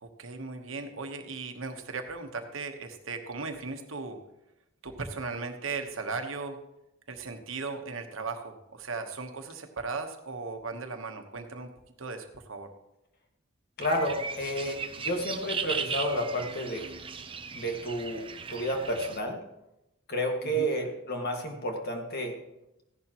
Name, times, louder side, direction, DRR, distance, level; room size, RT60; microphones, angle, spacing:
voice 1, 0.0-4.2 4.8-6.6 7.1-11.7 12.0-12.7 20.5-20.7, right 4 dB, 75° right, 6 dB, 1.3 m, -37 dB
voice 2, 13.8-16.9 17.5-19.4 20.1-22.4, equal, 50° left, 2 dB, 1.9 m, -31 dB
sound 1, 13.8-19.2, right 6 dB, 25° right, 0.7 m, -37 dB
15.0 x 11.0 x 3.0 m, 0.90 s
head